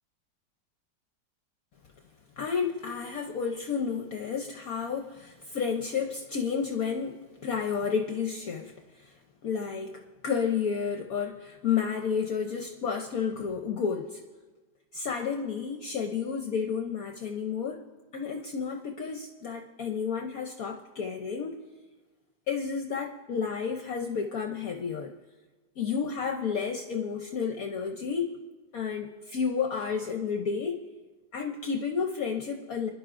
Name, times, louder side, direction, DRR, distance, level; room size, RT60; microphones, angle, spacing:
voice 1, 2.4-14.2 14.9-17.8 18.1-21.6 22.5-25.1 25.8-28.3 28.7-30.8 31.3-32.9, left 6 dB, 60° left, 3 dB, 1.1 m, -31 dB
26.5 x 11.0 x 2.5 m, 1.3 s
omnidirectional pair, 2.0 m